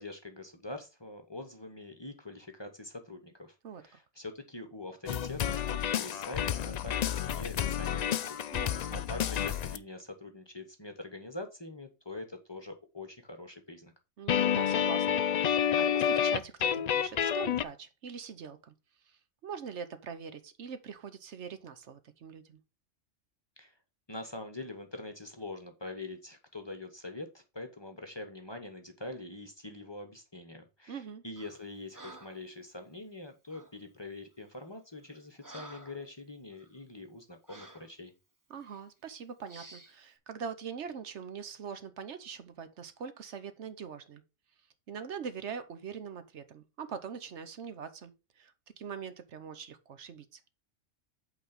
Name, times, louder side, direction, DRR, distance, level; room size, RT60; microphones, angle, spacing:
voice 1, 0.0-3.5 3.8-8.4 8.9-13.9 23.6-23.8 24.1-38.1, left 2 dB, 25° left, 1.0 m, -44 dB
sound 1, 5.1-9.8 14.3-17.6, left 9 dB, 80° left, 0.3 m, -29 dB
voice 2, 8.5-9.0 14.2-18.7 19.1-22.6 30.9-31.2 38.5-44.2 44.9-50.4, right 6 dB, 70° right, 1.1 m, -43 dB
Breathing, 31.4-31.6 31.9-32.5 33.5-33.8 34.4-34.6 35.0-36.1 36.5-36.7 37.5-37.9 38.6-38.8 39.5-40.0, right 2 dB, 15° right, 1.0 m, -51 dB
8.5 x 4.0 x 5.1 m
omnidirectional pair, 1.3 m